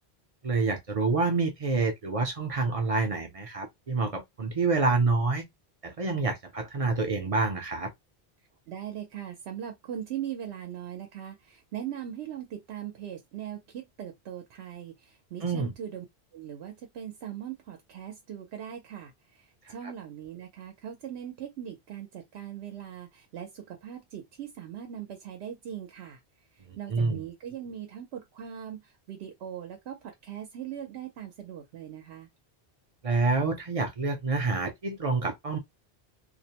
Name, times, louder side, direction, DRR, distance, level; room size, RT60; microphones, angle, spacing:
voice 1, 0.4-5.5 5.8-7.9 15.4-15.7 19.8-19.9 26.7-27.2 33.0-35.6, right 3 dB, 45° right, 0.5 m, -27 dB
voice 2, 8.7-16.1 16.3-26.2 26.5-32.3, right 10 dB, 85° right, 0.9 m, -40 dB
2.5 x 2.0 x 2.7 m
omnidirectional pair, 1.0 m